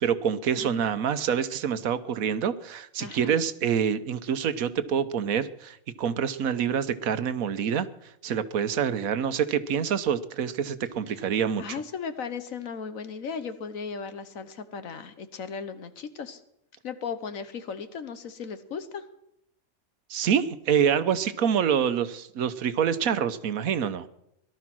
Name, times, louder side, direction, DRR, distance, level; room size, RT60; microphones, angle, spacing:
voice 1, 0.0-7.9 8.2-11.8 20.1-24.1, right 8 dB, 75° right, 13 dB, 1.3 m, -26 dB
voice 2, 3.0-3.3 11.6-16.4 16.8-19.0, left 6 dB, 70° left, 11 dB, 1.5 m, -36 dB
18.0 x 12.0 x 6.1 m, 0.80 s
omnidirectional pair, 1.5 m